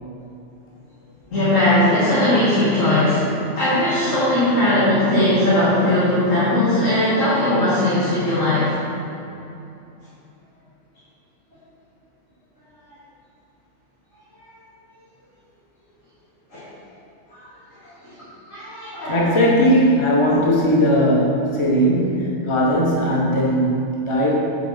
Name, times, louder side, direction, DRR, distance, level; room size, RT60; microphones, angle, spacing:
voice 1, 1.3-8.7 14.4-14.5 16.5-16.6 17.3-17.4 17.8-18.1 18.5-19.2, left 1 dB, 75° left, -13 dB, 2.4 m, -19 dB
voice 2, 19.1-24.3, equal, 25° left, -4 dB, 1.1 m, -18 dB
9.0 x 4.2 x 5.6 m, 2.7 s
omnidirectional pair, 1.3 m